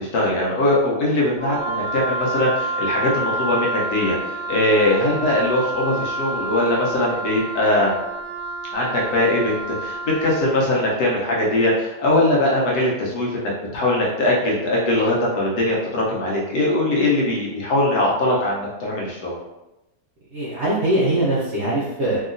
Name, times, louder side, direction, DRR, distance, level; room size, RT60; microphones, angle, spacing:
voice 1, 0.0-7.9 8.7-9.5 9.8-19.4, left 1 dB, 65° left, -4 dB, 1.2 m, -21 dB
Wind instrument woodwind instrument, 1.4-10.5, right 2 dB, 20° left, 1.3 m, -28 dB
voice 2, 20.3-22.2, right 1 dB, 60° right, -7 dB, 0.7 m, -21 dB
2.9 x 2.7 x 2.5 m, 0.97 s
omnidirectional pair, 1.8 m